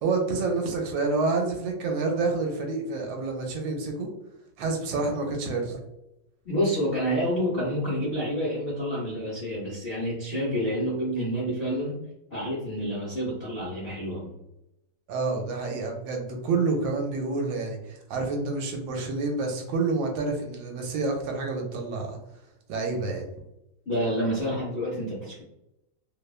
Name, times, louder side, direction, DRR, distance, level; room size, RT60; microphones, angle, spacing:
voice 1, 0.0-4.1 4.6-5.8 15.1-22.2 22.7-23.3, right 3 dB, 80° right, 2 dB, 1.3 m, -28 dB
voice 2, 6.4-12.0 12.3-14.3 23.9-25.4, equal, 60° left, -7 dB, 0.6 m, -28 dB
3.2 x 2.1 x 2.3 m, 0.88 s
omnidirectional pair, 2.1 m